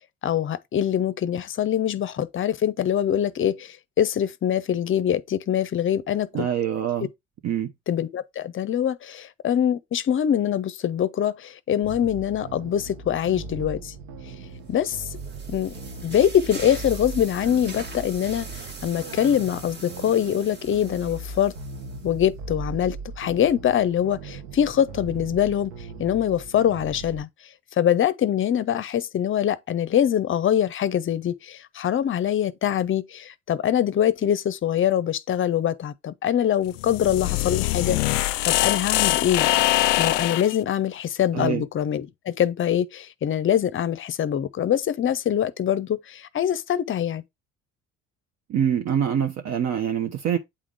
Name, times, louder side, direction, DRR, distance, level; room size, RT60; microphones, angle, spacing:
voice 1, 0.2-6.5 7.9-13.9 14.7-15.0 15.5-15.7 16.0-18.5 18.8-21.5 22.0-25.7 26.0-27.3 27.8-39.5 40.0-47.2, left 10 dB, 30° left, 0.7 m, -24 dB
voice 2, 6.3-7.1 7.4-7.7 41.3-41.6 48.5-50.4, right 9 dB, 45° right, 0.8 m, -25 dB
sound 1, 11.8-27.3, right 3 dB, 65° right, 1.1 m, -39 dB
sound 2, 14.6-22.2, right 3 dB, 25° right, 1.3 m, -42 dB
sound 3, 36.7-40.6, left 17 dB, 70° left, 0.5 m, -23 dB
8.7 x 3.7 x 3.4 m
figure-of-eight pair, 55°, 39 cm